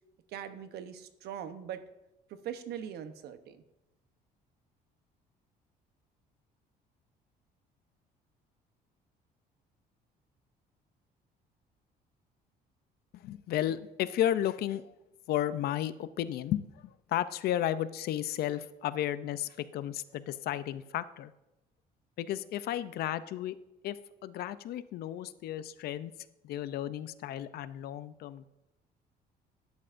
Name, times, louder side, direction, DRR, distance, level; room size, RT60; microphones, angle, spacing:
voice 1, 0.3-1.8 2.3-3.6, right 9 dB, 75° right, 10 dB, 0.9 m, -41 dB
voice 2, 13.1-14.9 15.3-21.3 22.2-23.6 23.8-26.1 26.4-28.5, left 12 dB, 70° left, 14 dB, 0.5 m, -33 dB
11.5 x 9.9 x 2.6 m, 0.91 s
cardioid pair, 110°, 17 cm